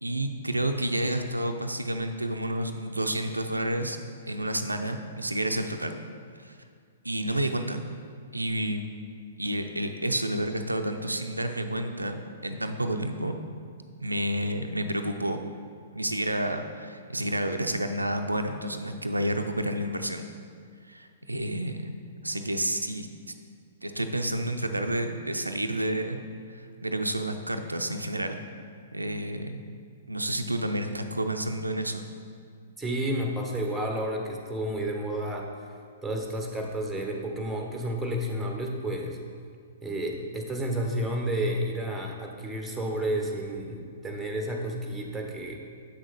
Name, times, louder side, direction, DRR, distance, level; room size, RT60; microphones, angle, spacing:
voice 1, 0.0-4.0 4.3-6.0 6.4-6.6 7.0-7.8 8.3-8.9 9.4-13.4 14.0-15.4 15.9-20.2 20.8-21.9 22.2-23.1 23.8-26.2 26.5-28.4 28.9-29.6 30.1-32.0, right 1 dB, 90° right, 6 dB, 0.5 m, -30 dB
voice 2, 32.8-35.5 36.0-39.2 39.8-45.6, right 1 dB, 5° right, 1 dB, 1.0 m, -31 dB
7.8 x 6.2 x 4.1 m, 2.2 s
figure-of-eight pair, 115°, 0 cm